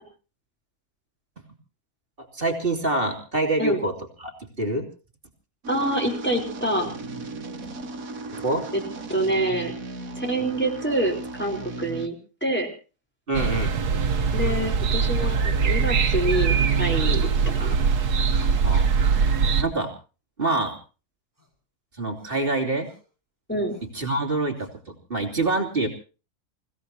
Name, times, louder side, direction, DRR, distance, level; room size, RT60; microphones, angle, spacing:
voice 1, 2.2-4.9 8.3-8.6 13.3-13.8 18.6-18.9 19.6-19.9 20.4-20.8 22.0-22.9 23.9-25.9, right 2 dB, 35° right, 3 dB, 3.1 m, -26 dB
sound 1, 5.6-12.1, right 3 dB, 65° right, 1.9 m, -36 dB
voice 2, 5.7-6.9 8.7-8.8 9.1-9.7 10.2-12.1 12.4-12.7 14.3-17.2 17.6-17.8 23.5-23.8, right 1 dB, 5° left, 0 dB, 4.2 m, -26 dB
sound 2, 13.3-19.6, right 5 dB, 85° right, 1.6 m, -22 dB
sound 3, 14.4-14.7 15.2-15.8 17.2-17.7 18.4-19.0 19.5-19.8 21.4-21.5 22.2-22.3 22.8-23.0 23.7-23.9 24.6-24.7, right 1 dB, 10° right, 4.7 m, -43 dB
29.0 x 17.0 x 2.9 m, 0.34 s
omnidirectional pair, 1.6 m